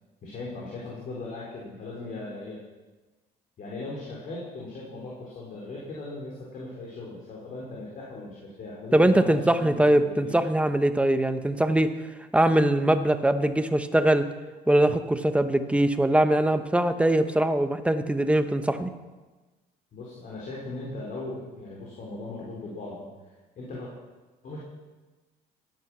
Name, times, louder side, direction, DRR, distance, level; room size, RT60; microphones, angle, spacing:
voice 1, 0.2-2.6 3.6-10.4 19.9-23.0 23.6-23.9 24.4-24.6, left 2 dB, 55° left, -4 dB, 4.1 m, -38 dB
voice 2, 8.9-11.9 12.3-14.2 14.7-18.9, right 1 dB, 5° right, 9 dB, 1.0 m, -22 dB
16.0 x 10.5 x 6.2 m, 1.2 s
cardioid pair, 110°, 17 cm